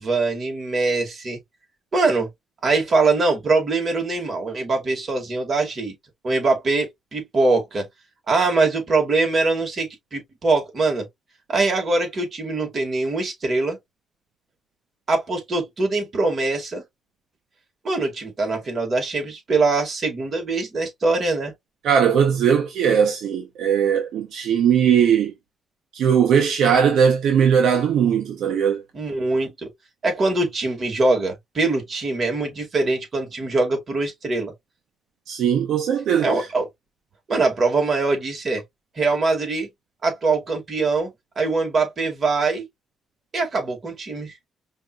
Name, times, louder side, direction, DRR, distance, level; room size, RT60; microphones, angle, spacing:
voice 1, 0.0-1.4 1.9-2.3 2.6-5.9 6.2-7.9 8.3-11.1 11.5-13.8 15.1-16.8 17.8-21.5 28.9-29.7 30.0-34.5 36.2-36.7 37.3-38.6 39.0-39.7 40.0-41.1 41.4-42.6 43.3-44.3, right 3 dB, 40° right, 2.2 m, -22 dB
voice 2, 21.8-25.3 25.9-28.8 35.3-36.5, right 8 dB, 75° right, 0.9 m, -19 dB
5.2 x 2.8 x 2.4 m
cardioid pair, 90°, 0 cm